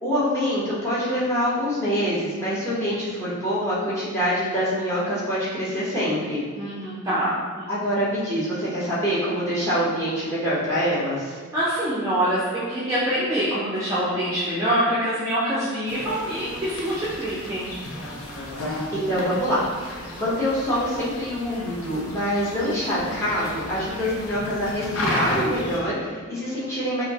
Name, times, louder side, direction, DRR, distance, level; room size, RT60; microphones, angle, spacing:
voice 1, 0.0-6.4 7.7-11.4 18.9-27.0, equal, 15° left, -10 dB, 0.9 m, -25 dB
voice 2, 6.6-7.7 11.5-17.7, right 1 dB, 15° right, -10 dB, 0.4 m, -25 dB
sound 1, 15.9-25.8, left 1 dB, 75° left, 0.6 m, -33 dB
4.8 x 2.0 x 2.8 m, 1.5 s
head